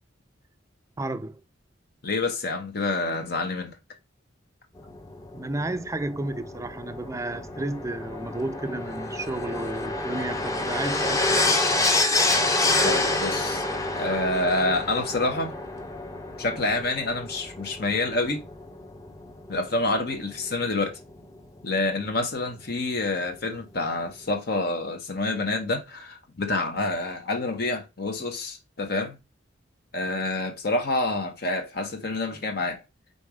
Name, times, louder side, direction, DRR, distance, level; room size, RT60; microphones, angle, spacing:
voice 1, 1.0-1.4 5.3-11.6, right 2 dB, 15° right, 0.5 m, -32 dB
voice 2, 2.0-3.8 12.8-13.7 14.0-15.5 16.4-18.4 19.5-21.0 21.6-29.2 29.9-32.8, left 2 dB, 50° left, 1.0 m, -27 dB
sound 1, 4.8-21.2 22.2-22.3, left 2 dB, 15° left, 0.8 m, -28 dB
5.3 x 4.1 x 4.9 m
head